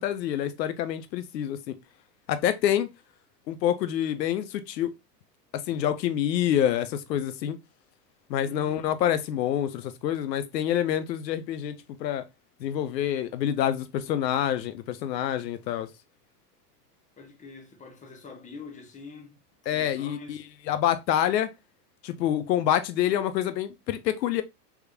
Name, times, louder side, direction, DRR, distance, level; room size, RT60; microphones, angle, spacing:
voice 1, 0.0-1.7 2.3-2.9 3.5-4.9 5.5-7.6 8.3-12.2 12.6-15.9 19.7-21.5 22.0-24.4, left 10 dB, 90° left, 0.7 m, -27 dB
voice 2, 8.4-8.9 17.2-19.4 19.7-20.4, left 4 dB, 15° left, 0.8 m, -45 dB
3.5 x 3.0 x 2.2 m
hypercardioid pair, 120°, 48 cm